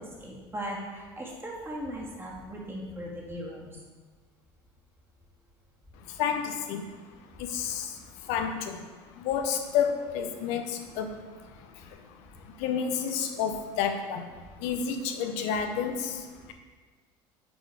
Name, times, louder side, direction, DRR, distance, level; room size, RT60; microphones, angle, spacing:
voice 1, 0.0-3.8, equal, 20° right, -3 dB, 1.8 m, -38 dB
voice 2, 6.2-6.8 7.4-7.8 8.3-8.8 9.2-11.1 12.6-14.2 14.6-16.2, left 7 dB, 75° left, 6 dB, 0.6 m, -29 dB
6.1 x 3.7 x 4.7 m, 1.4 s
supercardioid pair, 90°, 11 cm